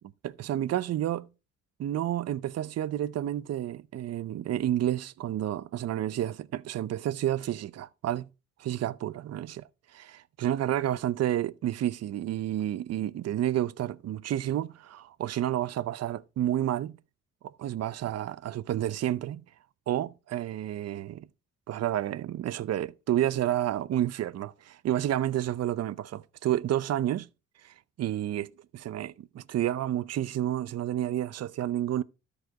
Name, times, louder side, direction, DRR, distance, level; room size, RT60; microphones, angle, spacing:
voice 1, 0.2-1.3 1.8-8.3 8.6-9.6 9.9-17.0 17.4-19.4 19.9-21.3 21.7-27.3 27.6-32.0, right 12 dB, 55° right, 0.6 m, -30 dB
13.0 x 5.0 x 4.6 m
cardioid pair, 90°, 30 cm